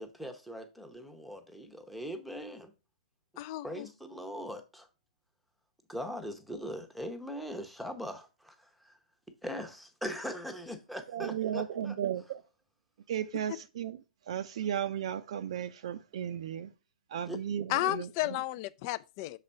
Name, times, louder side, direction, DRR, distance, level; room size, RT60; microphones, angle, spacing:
voice 1, 0.0-2.7 3.6-4.9 5.9-8.5 8.8-8.9 9.4-12.0 17.3-17.4, equal, ahead, 0.9 m, -40 dB
voice 2, 3.4-3.9 17.7-19.4, left 16 dB, 35° left, 0.4 m, -33 dB
voice 3, 11.1-12.4 13.1-14.0 14.3-16.7 17.1-18.1, right 9 dB, 50° right, 0.5 m, -35 dB
6.7 x 4.2 x 5.3 m
figure-of-eight pair, 115°, 4 cm